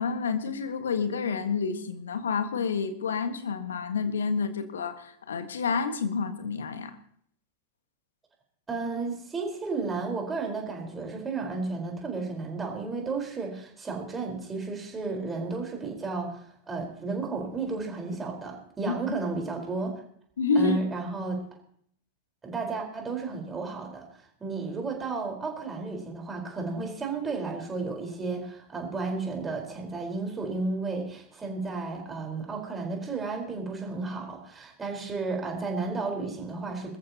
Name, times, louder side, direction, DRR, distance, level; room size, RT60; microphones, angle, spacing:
voice 1, 0.0-6.9 18.9-19.0 20.4-20.8, left 5 dB, 65° left, 8 dB, 1.7 m, -29 dB
voice 2, 8.7-20.0 20.5-21.4 22.4-37.0, right 3 dB, 15° right, 1 dB, 4.5 m, -33 dB
23.0 x 14.0 x 3.0 m, 0.63 s
figure-of-eight pair, 90°, 0 cm